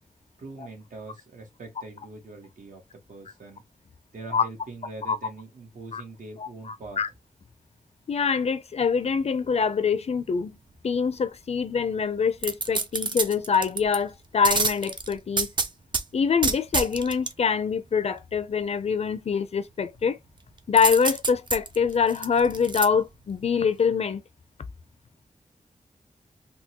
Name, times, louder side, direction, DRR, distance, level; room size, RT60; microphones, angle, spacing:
voice 1, 0.4-3.6 4.1-7.0, right 2 dB, 80° right, 1.3 m, -43 dB
voice 2, 6.4-7.1 8.1-10.6 10.8-15.5 16.1-20.2 20.7-24.2, left 6 dB, 55° left, 0.4 m, -25 dB
sound 1, 12.4-14.0 14.4-16.0 16.4-17.3 20.8-22.9 23.3-23.4, right 3 dB, 35° right, 0.5 m, -27 dB
3.5 x 2.2 x 2.9 m
wide cardioid pair, 140°, 13 cm